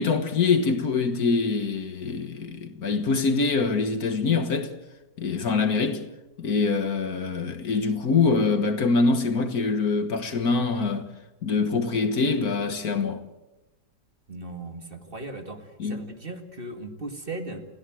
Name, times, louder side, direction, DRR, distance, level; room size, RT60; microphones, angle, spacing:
voice 1, 0.0-4.7 5.2-6.0 6.4-11.1 11.4-13.2 15.8-16.0, left 4 dB, 60° left, 1.9 m, -24 dB
voice 2, 14.3-17.7, right 2 dB, 30° right, 2.2 m, -37 dB
28.5 x 16.5 x 7.7 m
omnidirectional pair, 1.8 m